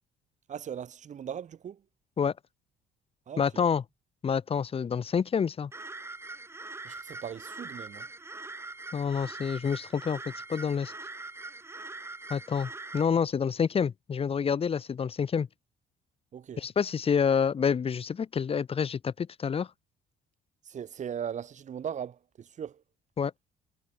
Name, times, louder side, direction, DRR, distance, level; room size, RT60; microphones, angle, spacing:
voice 1, 0.5-1.8 3.3-3.7 6.8-8.1 16.3-16.7 20.6-22.8, right 8 dB, 45° right, 2.5 m, -39 dB
voice 2, 3.4-3.8 4.2-5.7 8.9-10.9 12.3-15.5 16.6-19.7 23.2-23.3, left 6 dB, 35° left, 1.5 m, -28 dB
sound 1, 5.7-13.1, right 3 dB, 15° right, 2.4 m, -42 dB
cardioid pair, 110°, 17 cm